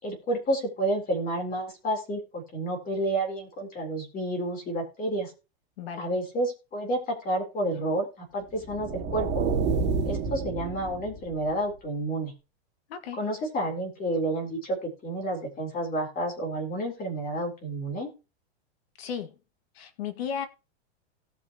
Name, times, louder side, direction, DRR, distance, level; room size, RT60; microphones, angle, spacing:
voice 1, 0.0-5.3 6.0-9.4 10.0-12.3 13.2-18.1, right 1 dB, 25° left, 3.9 m, -30 dB
voice 2, 5.8-6.1 12.9-13.2 19.0-19.3 19.8-20.5, left 7 dB, 65° left, 2.0 m, -34 dB
sound 1, 8.5-11.5, right 4 dB, 35° right, 2.7 m, -29 dB
18.0 x 6.2 x 3.0 m
supercardioid pair, 140°, 33 cm